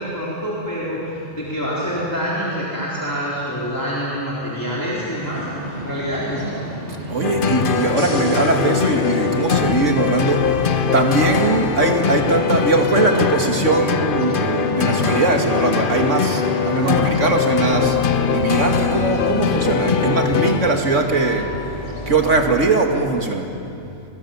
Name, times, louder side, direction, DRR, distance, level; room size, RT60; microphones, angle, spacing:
voice 1, 0.0-5.5 5.7-6.5, equal, 15° left, -8 dB, 4.1 m, -26 dB
sound 1, 4.9-22.9, equal, 40° right, 6.1 m, -32 dB
voice 2, 7.1-10.5 10.9-18.0 18.3-21.6 22.1-23.5, right 3 dB, 85° right, 3 dB, 2.6 m, -20 dB
sound 2, 7.2-21.0, left 6 dB, 50° left, 1.0 m, -21 dB
sound 3, 17.7-22.7, left 6 dB, 70° left, 2.7 m, -31 dB
29.5 x 23.5 x 7.3 m, 2.7 s
omnidirectional pair, 1.2 m